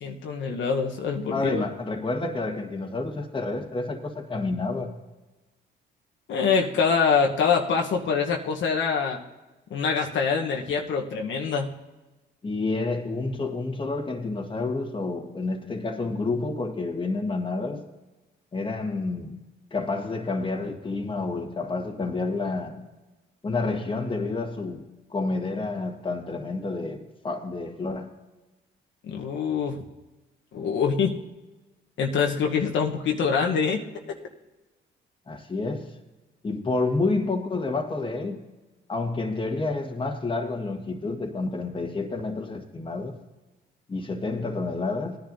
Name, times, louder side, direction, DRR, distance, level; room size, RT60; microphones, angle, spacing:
voice 1, 0.0-1.6 6.3-9.2 9.7-11.7 29.0-29.8 30.5-31.2 32.0-34.2, left 5 dB, 70° left, 1 dB, 1.1 m, -25 dB
voice 2, 1.3-4.9 12.4-17.8 18.5-19.4 19.7-22.9 23.4-28.1 35.3-36.0 36.4-38.4 38.9-43.2 43.9-45.2, left 3 dB, 25° left, 4 dB, 1.5 m, -29 dB
18.0 x 10.5 x 2.7 m, 1.1 s
cardioid pair, 90°, 20 cm